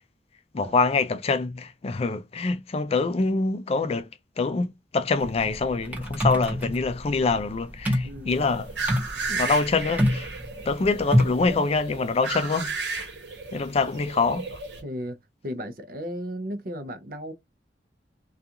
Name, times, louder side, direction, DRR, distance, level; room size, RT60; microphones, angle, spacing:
voice 1, 0.5-4.1 4.4-8.7 9.3-10.3 10.7-13.1 13.5-14.5, left 4 dB, 35° left, 0.4 m, -25 dB
sound 1, 5.2-11.5, equal, 10° right, 0.8 m, -26 dB
voice 2, 8.0-8.5 14.8-17.3, equal, 55° right, 0.6 m, -35 dB
sound 2, 8.3-14.8, right 4 dB, 90° right, 1.1 m, -34 dB
2.4 x 2.3 x 2.7 m
head